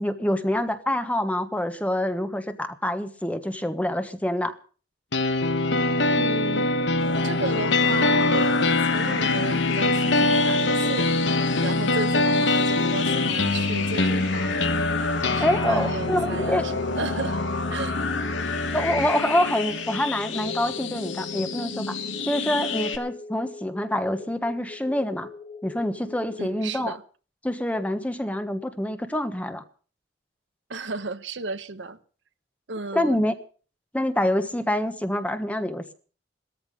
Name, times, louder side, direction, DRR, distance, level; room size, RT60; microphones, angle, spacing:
voice 1, 0.0-4.6 15.4-16.6 18.7-21.9 22.2-25.3 25.6-27.0 27.4-29.6 32.9-33.3 33.9-35.9, left 1 dB, 10° left, 1.2 m, -26 dB
sound 1, 5.1-19.1, left 2 dB, 70° left, 1.2 m, -24 dB
voice 2, 6.1-6.7 7.2-11.1 11.6-14.6 15.2-17.4 17.7-18.0 26.4-27.0 30.7-32.0 32.7-33.2, right 3 dB, 75° right, 1.0 m, -33 dB
sound 2, 7.0-23.0, left 4 dB, 85° left, 2.2 m, -30 dB
sound 3, 14.6-26.6, left 3 dB, 25° left, 2.9 m, -43 dB
17.5 x 14.0 x 5.4 m
head